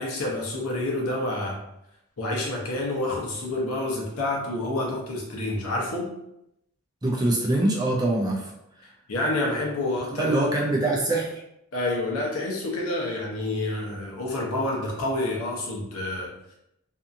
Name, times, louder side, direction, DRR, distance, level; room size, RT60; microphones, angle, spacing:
voice 1, 0.0-1.6 2.2-6.1 9.1-10.4 10.8-10.9 11.7-16.5, left 2 dB, 80° left, -2 dB, 0.7 m, -28 dB
voice 2, 7.0-8.5 10.1-11.3, right 2 dB, 20° right, -2 dB, 0.4 m, -24 dB
2.7 x 2.4 x 2.6 m, 0.83 s
head